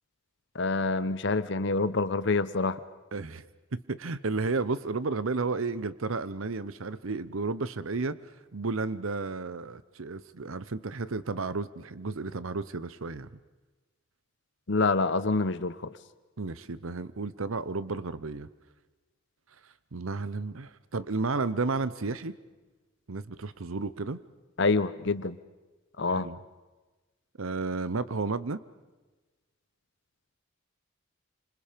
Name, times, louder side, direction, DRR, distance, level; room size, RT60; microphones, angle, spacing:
voice 1, 0.5-2.8 14.7-15.9 24.6-25.4 26.0-26.3, left 3 dB, 55° left, 13 dB, 0.9 m, -26 dB
voice 2, 3.1-3.5 3.7-8.2 8.5-13.3 16.4-18.5 19.9-22.3 23.1-24.2 26.1-26.4 27.4-28.6, right 3 dB, 75° right, 16 dB, 0.9 m, -32 dB
29.0 x 26.5 x 5.2 m, 1.2 s
head